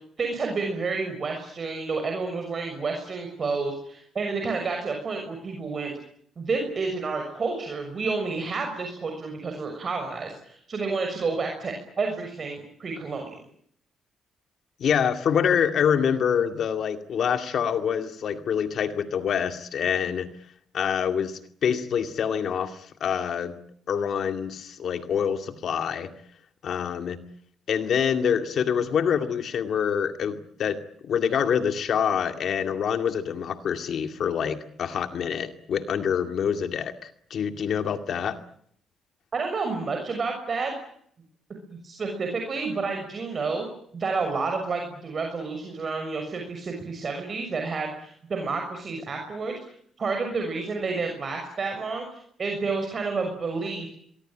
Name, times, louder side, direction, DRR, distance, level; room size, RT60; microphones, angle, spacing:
voice 1, 0.2-5.9 6.4-13.4 39.3-40.7 41.7-43.6 43.9-49.5 50.0-53.9, right 4 dB, 40° right, 3 dB, 6.4 m, -30 dB
voice 2, 14.8-20.3 20.7-23.5 23.9-26.1 26.6-27.2 27.7-30.8 31.0-38.4, left 7 dB, 65° left, 8 dB, 2.2 m, -26 dB
24.5 x 23.0 x 9.1 m, 0.67 s
cardioid pair, 90°, 0 cm